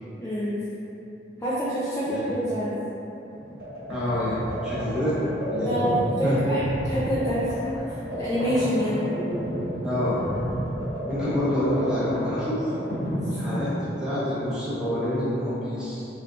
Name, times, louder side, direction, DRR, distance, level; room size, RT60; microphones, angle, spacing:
voice 1, 0.2-0.6 1.4-2.8 5.6-6.6 6.8-7.4 8.2-9.1, equal, 15° left, -12 dB, 0.4 m, -26 dB
sound 1, 3.3-14.2, equal, 65° right, 1.5 m, -31 dB
voice 2, 3.9-4.4 4.6-5.2 5.5-5.8 6.2-6.4 9.8-10.2 11.1-12.7 13.3-13.7 14.0-16.1, left 1 dB, 5° right, -11 dB, 0.9 m, -27 dB
3.5 x 3.4 x 2.4 m, 3.0 s
head